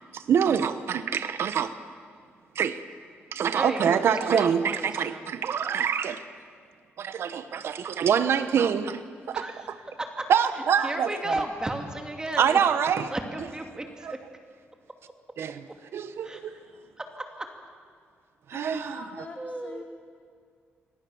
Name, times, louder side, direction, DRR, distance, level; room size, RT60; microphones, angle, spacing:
voice 1, 0.1-1.8 2.5-2.8 3.3-6.2 7.0-9.0 9.3-9.8 10.3-11.3 12.4-13.1 14.0-14.1 15.4-16.6 18.5-19.0, right 7 dB, 70° right, 11 dB, 1.2 m, -25 dB
voice 2, 3.5-5.3 9.3-9.7 10.8-12.6 13.1-14.1 16.2-16.6 17.2-17.5 18.7-18.8 19.4-19.8, right 1 dB, 15° right, 4 dB, 2.6 m, -34 dB
voice 3, 18.5-19.8, left 3 dB, 40° left, 0 dB, 5.1 m, -42 dB
28.0 x 25.0 x 7.2 m, 2.1 s
cardioid pair, 120°, 4 cm